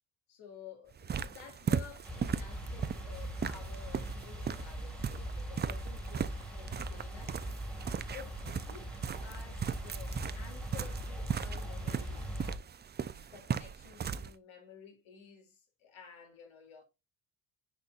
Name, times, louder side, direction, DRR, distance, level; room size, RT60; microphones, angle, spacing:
voice 1, 0.3-7.4 8.1-12.3 13.3-16.8, left 7 dB, 85° left, 2.8 m, -52 dB
sound 1, 0.9-14.3, right 7 dB, 25° right, 0.3 m, -38 dB
sound 2, 2.0-12.6, right 1 dB, ahead, 1.6 m, -41 dB
10.0 x 4.2 x 2.4 m
cardioid pair, 120°, 47 cm